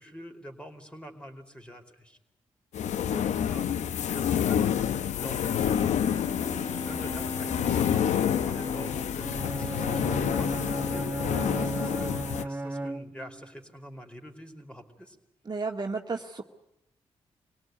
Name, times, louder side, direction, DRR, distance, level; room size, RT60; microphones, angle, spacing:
voice 1, 0.0-2.2 3.0-6.0 6.5-15.2, equal, 10° left, 4 dB, 4.6 m, -46 dB
sound 1, 2.7-12.5, left 9 dB, 75° left, 0.8 m, -28 dB
Bowed string instrument, 5.2-11.2, left 3 dB, 35° left, 1.9 m, -38 dB
Bowed string instrument 2, 9.2-13.4, right 2 dB, 15° right, 1.1 m, -34 dB
voice 2, 15.5-16.4, right 4 dB, 35° right, 2 dB, 2.1 m, -32 dB
25.0 x 18.0 x 9.6 m, 0.88 s
supercardioid pair, 50°, 12 cm